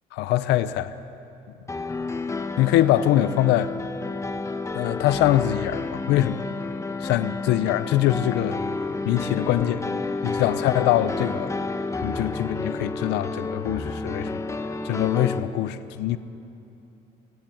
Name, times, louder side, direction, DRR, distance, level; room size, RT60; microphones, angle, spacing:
voice 1, 0.1-0.9 2.6-3.7 4.7-6.4 7.0-8.6 9.1-9.9 10.2-11.5 12.0-14.5 14.8-16.2, left 13 dB, 90° left, 0.7 m, -23 dB
sound 1, 1.7-15.4, left 3 dB, 15° left, 1.0 m, -30 dB
21.0 x 16.0 x 9.2 m
cardioid pair, 110°, 17 cm